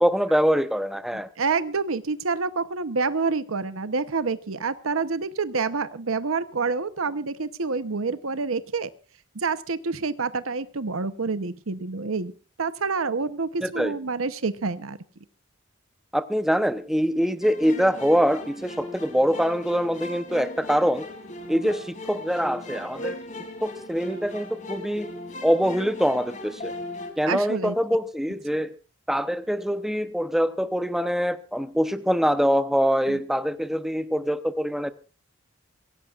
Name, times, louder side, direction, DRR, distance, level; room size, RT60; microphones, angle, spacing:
voice 1, 0.0-1.3 13.6-14.0 16.1-21.0 21.5-23.2 23.6-25.1 25.4-26.7 27.2-28.7 29.1-34.9, equal, ahead, 0.8 m, -24 dB
voice 2, 1.1-8.9 9.3-12.3 12.6-15.0 27.3-27.8 33.1-33.2, right 4 dB, 85° right, 0.9 m, -27 dB
sound 1, 17.4-27.1, left 1 dB, 35° left, 3.1 m, -37 dB
23.5 x 17.0 x 2.5 m
head